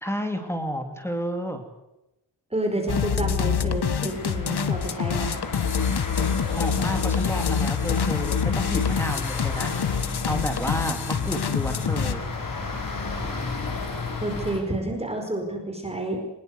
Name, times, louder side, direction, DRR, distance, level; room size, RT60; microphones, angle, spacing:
voice 1, 0.0-1.6 6.5-9.7 10.2-12.3, equal, 5° left, 5 dB, 2.9 m, -31 dB
voice 2, 2.5-5.4 14.2-16.2, right 1 dB, 15° right, 3 dB, 4.9 m, -29 dB
sound 1, 2.9-12.1, left 7 dB, 70° left, 1.7 m, -26 dB
sound 2, 4.1-14.6, left 4 dB, 50° left, 5.7 m, -33 dB
23.5 x 21.0 x 8.0 m, 0.93 s
wide cardioid pair, 165°, 41 cm